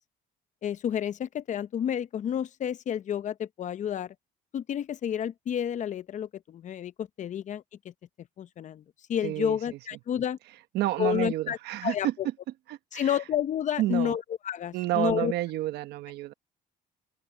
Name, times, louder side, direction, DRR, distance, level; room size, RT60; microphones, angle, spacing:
voice 1, 0.6-4.1 4.5-7.9 8.4-8.8 9.1-10.4 11.0-12.3 12.9-15.3, left 9 dB, 45° left, 0.7 m, -30 dB
voice 2, 9.2-9.6 10.7-12.1 12.7-13.2 13.8-14.2 14.7-16.3, right 15 dB, 80° right, 1.0 m, -30 dB
open air
cardioid pair, 110°, 17 cm